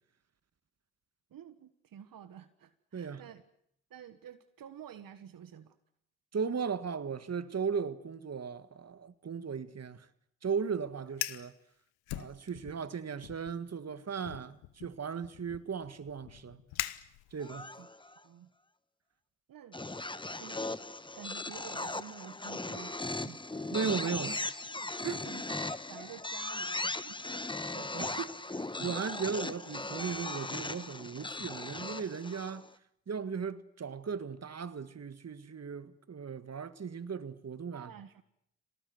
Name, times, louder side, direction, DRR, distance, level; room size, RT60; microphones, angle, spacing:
voice 1, 1.3-3.4 3.9-5.8 17.8-17.9 18.2-18.5 19.5-19.8 20.3-20.7 21.1-24.3 25.0-27.2 37.7-38.2, right 9 dB, 65° right, 1.5 m, -50 dB
voice 2, 2.9-3.3 6.3-10.1 10.4-11.5 12.1-16.6 17.3-17.7 23.7-24.4 25.0-25.2 27.7-32.7 33.1-37.9, right 6 dB, 45° right, 1.8 m, -37 dB
Fire, 11.1-11.5 12.1-12.9 13.2-13.6 14.2-17.6, left 17 dB, 85° left, 1.0 m, -41 dB
sound 1, 17.4-18.2 19.7-32.7, left 2 dB, 15° left, 1.3 m, -38 dB
25.5 x 18.5 x 9.6 m
hypercardioid pair, 40°, 37 cm